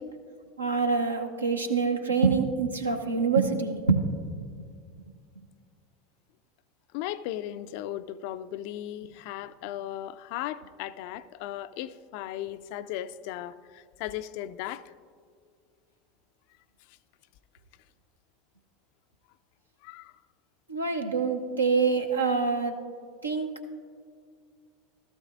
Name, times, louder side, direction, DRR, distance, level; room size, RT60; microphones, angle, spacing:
voice 1, 0.6-4.0 20.7-22.7 23.2-23.5, right 4 dB, 80° right, 0.8 m, -25 dB
voice 2, 6.9-14.9 19.8-20.1, left 12 dB, 55° left, 0.3 m, -37 dB
16.0 x 13.5 x 2.5 m
figure-of-eight pair, 80°, 0 cm